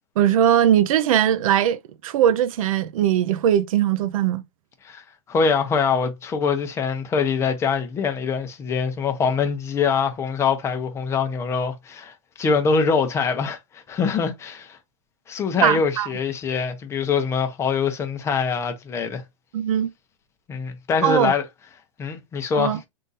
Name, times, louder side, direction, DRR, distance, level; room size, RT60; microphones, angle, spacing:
voice 1, 0.2-4.4 15.6-16.1 19.5-19.9 21.0-21.3 22.5-22.8, right 10 dB, 75° right, 0.6 m, -20 dB
voice 2, 4.8-14.8 15.3-19.2 20.5-21.4 22.0-22.8, left 5 dB, 15° left, 0.7 m, -24 dB
3.7 x 2.7 x 3.9 m
supercardioid pair, 155°, 17 cm